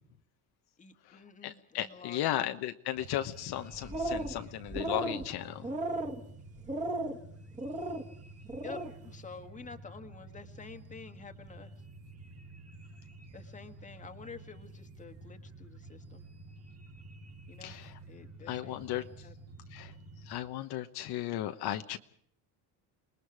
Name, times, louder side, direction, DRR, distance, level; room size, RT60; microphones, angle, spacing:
voice 1, 0.8-2.5 8.6-11.7 13.3-16.3 17.5-17.8 18.1-19.5, left 5 dB, 15° left, 7 dB, 1.7 m, -49 dB
voice 2, 1.4-5.7 17.6-17.9 18.5-19.0 19.7-19.9 20.3-22.0, left 13 dB, 60° left, 8 dB, 1.2 m, -35 dB
sound 1, 2.9-20.3, right 2 dB, 35° right, 2.5 m, -50 dB
sound 2, 3.7-4.4 4.7-5.2 5.6-6.2 6.7-7.2 7.6-8.0 8.5-8.9, right 2 dB, 15° right, 2.2 m, -35 dB
28.0 x 20.5 x 4.9 m, 0.64 s
cardioid pair, 150°, 43 cm